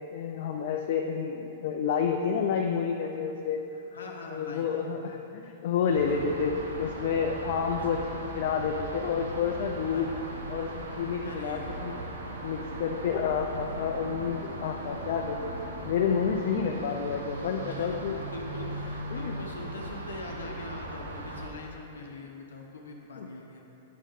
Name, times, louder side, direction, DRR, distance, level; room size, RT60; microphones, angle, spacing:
voice 1, 0.1-3.6 4.3-10.1 10.5-11.9 12.4-15.5 15.8-18.1 19.1-19.3 23.2-23.3, left 6 dB, 60° left, 2 dB, 0.4 m, -29 dB
voice 2, 3.7-4.9 7.8-7.9 9.9-10.1 11.2-12.2 14.9-15.0 16.2-16.5 17.7-23.6, left 2 dB, 85° left, 1 dB, 0.7 m, -43 dB
sound 1, 5.9-21.5, right 2 dB, 85° right, 0.7 m, -38 dB
9.4 x 3.6 x 3.6 m, 3.0 s
hypercardioid pair, 115°, 0 cm